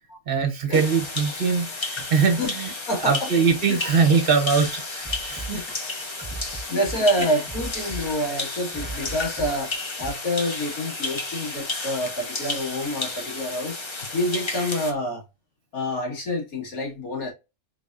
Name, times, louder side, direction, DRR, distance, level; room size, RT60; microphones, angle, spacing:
voice 1, 0.3-2.7 3.0-5.6 6.7-6.8, right 5 dB, 45° right, 1.0 m, -22 dB
sound 1, 0.7-14.9, left 3 dB, 30° left, 0.5 m, -32 dB
voice 2, 2.9-3.3 3.7-3.9 5.5-5.6 6.4-15.2 15.7-17.3, equal, 80° left, 2.2 m, -27 dB
sound 2, 5.0-10.1, right 3 dB, 15° right, 1.0 m, -38 dB
3.9 x 3.4 x 2.5 m
omnidirectional pair, 1.5 m